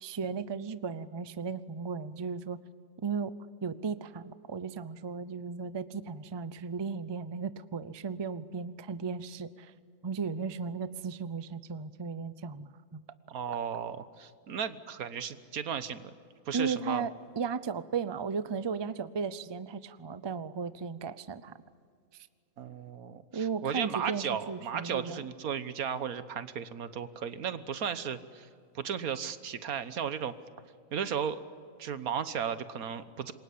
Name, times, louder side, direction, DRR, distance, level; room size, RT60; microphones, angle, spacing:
voice 1, 0.0-2.6 3.0-3.3 3.6-9.7 10.0-13.0 16.5-21.5 23.3-25.2, right 5 dB, 30° right, 14 dB, 0.4 m, -35 dB
voice 2, 13.3-16.2 16.5-17.1 22.6-28.5 28.7-30.3 30.9-31.4 31.8-33.3, right 7 dB, 85° right, 12 dB, 1.5 m, -35 dB
27.0 x 22.5 x 8.5 m, 2.2 s
omnidirectional pair, 1.5 m